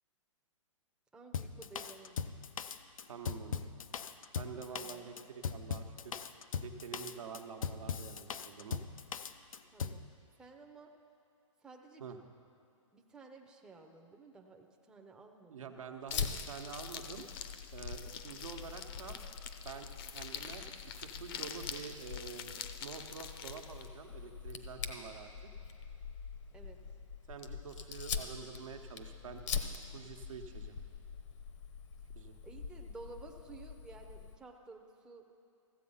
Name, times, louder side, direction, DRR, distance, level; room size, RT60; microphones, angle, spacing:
voice 1, 1.1-2.4 4.7-5.1 9.7-10.1 10.4-10.9 11.6-12.2 12.9-15.7 26.5-26.8 32.4-35.2, right 3 dB, 5° right, 1 dB, 0.6 m, -53 dB
Drum kit, 1.3-10.0, left 6 dB, 85° left, 0.5 m, -39 dB
voice 2, 3.1-3.7 4.4-6.2 6.5-8.8 12.0-12.2 15.5-17.2 17.7-19.2 19.6-20.7 20.9-22.5 22.8-25.3 27.3-29.4 29.9-30.8 32.1-32.4, right 6 dB, 80° right, 4 dB, 1.1 m, -47 dB
Fire, 16.1-34.4, left 6 dB, 60° left, 1.0 m, -44 dB
sound 1, 16.1-23.9, left 8 dB, 45° left, 0.7 m, -46 dB
14.5 x 7.7 x 5.5 m, 2.7 s
hypercardioid pair, 135°, 17 cm